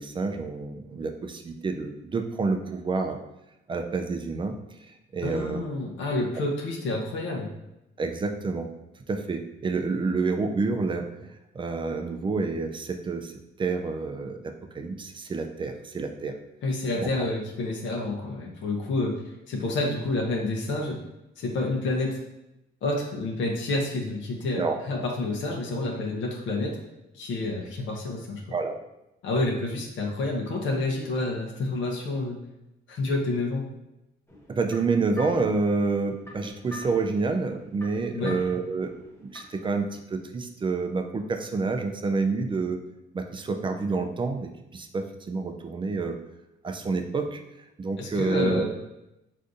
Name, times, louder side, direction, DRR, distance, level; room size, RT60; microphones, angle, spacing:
voice 1, 0.0-3.2 3.7-4.5 4.8-5.6 8.0-8.7 9.1-11.3 11.5-13.3 13.6-16.3 17.0-17.1 24.6-24.8 28.5-28.8 34.5-39.0 39.2-42.8 43.1-46.2 46.6-47.4 47.8-48.6, right 4 dB, 25° right, 5 dB, 0.3 m, -28 dB
voice 2, 5.2-7.5 16.6-19.1 19.5-21.0 21.4-22.1 22.8-26.7 27.1-28.4 29.2-32.4 32.9-33.6 38.1-38.4 48.0-48.7, left 2 dB, 70° left, -1 dB, 0.6 m, -29 dB
sound 1, 34.3-39.7, left 2 dB, 15° left, 0.8 m, -45 dB
3.5 x 2.6 x 2.5 m, 0.91 s
cardioid pair, 90°, 20 cm